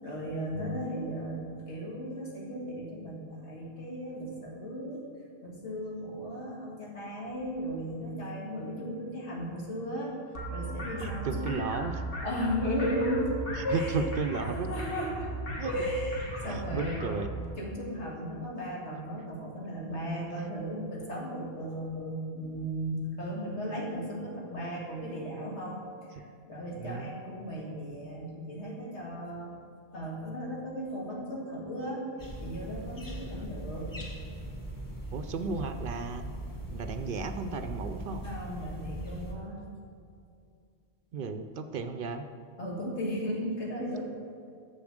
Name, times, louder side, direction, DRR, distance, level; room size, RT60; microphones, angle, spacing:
voice 1, 0.0-5.0 5.4-10.2 10.5-11.6 12.2-13.3 13.6-14.0 14.4-15.3 15.6-17.0 17.6-29.5 29.9-32.0 32.4-33.9 38.2-39.7 42.6-44.0, equal, 85° left, -3 dB, 2.2 m, -35 dB
voice 2, 0.5-0.8 10.9-12.0 13.6-14.7 15.6-15.7 16.5-17.3 26.7-27.1 33.3-33.5 35.1-36.3 36.7-38.2 41.1-42.2, right 4 dB, 60° right, 8 dB, 0.6 m, -34 dB
sound 1, 10.3-17.5, right 1 dB, 55° left, 1.7 m, -37 dB
sound 2, 32.2-39.3, right 1 dB, 20° left, 1.0 m, -40 dB
7.1 x 6.9 x 6.5 m, 2.5 s
omnidirectional pair, 1.1 m